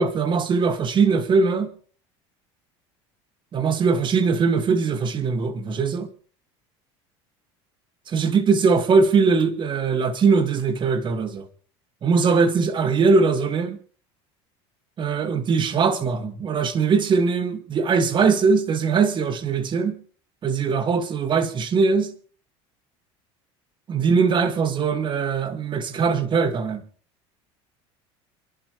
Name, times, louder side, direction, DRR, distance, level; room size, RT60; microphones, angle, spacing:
voice 1, 0.0-1.7 3.5-6.1 8.1-11.5 12.0-13.8 15.0-20.0 20.4-22.1 23.9-26.8, right 5 dB, 35° right, 2.3 m, -21 dB
27.5 x 11.5 x 3.3 m
supercardioid pair, 110°, 14 cm